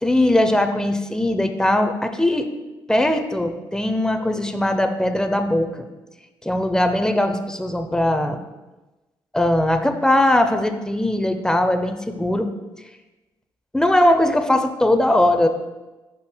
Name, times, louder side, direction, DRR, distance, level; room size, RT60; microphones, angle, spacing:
voice 1, 0.0-2.5 2.9-5.9 6.4-8.4 9.3-12.5 13.7-15.5, left 1 dB, 5° left, 6 dB, 0.8 m, -20 dB
10.5 x 5.3 x 2.3 m, 1.1 s
hypercardioid pair, 50°, 10 cm